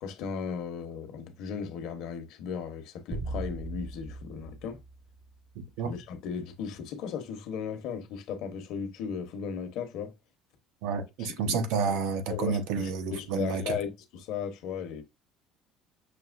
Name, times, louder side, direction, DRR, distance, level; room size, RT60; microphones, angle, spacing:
voice 1, 0.0-4.8 5.8-10.1 11.2-11.6 12.3-15.0, left 7 dB, 60° left, 0.8 m, -36 dB
sound 1, 3.1-5.6, right 2 dB, 30° right, 0.7 m, -39 dB
voice 2, 10.8-13.8, right 5 dB, 85° right, 0.8 m, -30 dB
6.0 x 2.8 x 2.5 m
cardioid pair, 170°, 0 cm